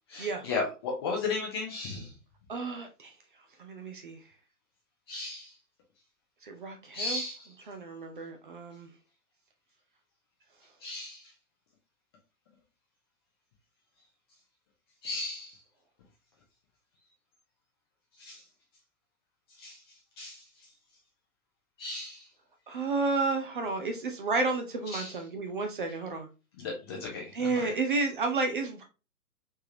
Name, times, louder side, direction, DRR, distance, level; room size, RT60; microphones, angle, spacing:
voice 1, 0.1-2.1 5.1-5.5 6.9-7.5 10.8-11.3 15.0-15.6 18.2-18.4 19.6-19.8 20.2-20.4 21.8-22.3 24.9-25.1 26.6-27.7, left 3 dB, 20° left, -1 dB, 0.6 m, -35 dB
voice 2, 2.5-3.2 3.6-4.2 6.4-7.2 7.7-8.9 22.7-26.3 27.3-28.8, right 3 dB, 35° right, 4 dB, 0.5 m, -31 dB
3.4 x 3.3 x 2.7 m, 0.32 s
figure-of-eight pair, 125°, 44 cm